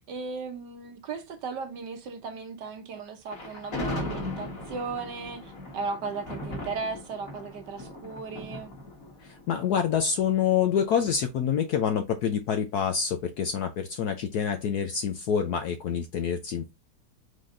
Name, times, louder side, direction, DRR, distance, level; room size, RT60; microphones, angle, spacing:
voice 1, 0.1-8.7, right 4 dB, 65° right, 1.4 m, -36 dB
Thunder, 3.3-10.5, left 1 dB, 45° left, 2.2 m, -38 dB
voice 2, 9.2-16.7, left 7 dB, 70° left, 0.9 m, -27 dB
4.9 x 3.8 x 2.6 m
omnidirectional pair, 2.2 m